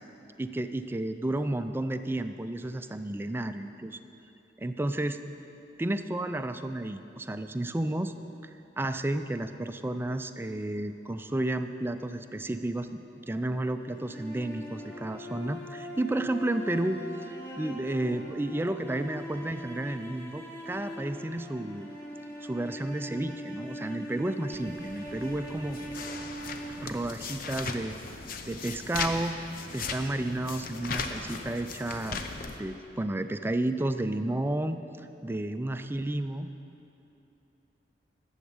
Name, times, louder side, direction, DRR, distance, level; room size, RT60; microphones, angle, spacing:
voice 1, 0.4-4.0 4.6-5.2 5.8-8.1 8.8-13.0 13.3-21.9 22.4-25.8 26.8-28.0 28.4-29.4 29.7-32.2 32.6-36.5, right 1 dB, 15° right, 9 dB, 0.4 m, -32 dB
sound 1, 13.8-27.9, equal, 15° left, 1.5 m, -42 dB
sound 2, 24.5-32.6, left 4 dB, 55° left, 0.7 m, -38 dB
12.0 x 7.2 x 7.2 m, 2.9 s
head